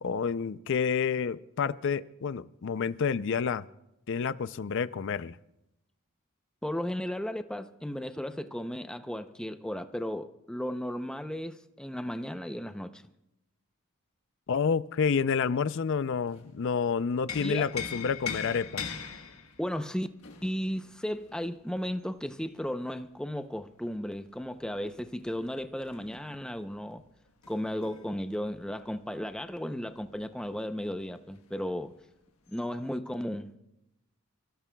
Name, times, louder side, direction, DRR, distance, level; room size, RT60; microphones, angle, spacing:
voice 1, 0.0-3.7 4.1-5.4 14.5-18.9, left 6 dB, 55° left, 0.4 m, -29 dB
voice 2, 6.6-13.0 17.4-17.7 19.6-20.1 20.4-27.0 27.5-31.9 32.5-33.5, equal, 5° left, 0.6 m, -35 dB
sound 1, 15.9-16.7 17.0-22.5 24.4-30.2 30.5-30.6 31.0-31.7 32.5-32.6, left 6 dB, 75° left, 1.3 m, -42 dB
29.5 x 16.0 x 2.3 m
head